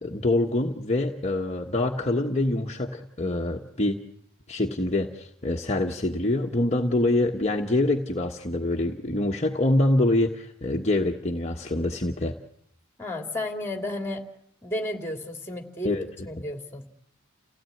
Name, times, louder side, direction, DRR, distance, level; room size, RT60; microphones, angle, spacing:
voice 1, 0.0-4.0 4.5-12.3 15.8-16.1, left 2 dB, 30° left, 0 dB, 1.3 m, -25 dB
voice 2, 13.0-14.2 14.6-15.9 16.2-16.9, left 1 dB, 10° left, 4 dB, 2.7 m, -32 dB
30.0 x 16.5 x 9.3 m, 0.74 s
head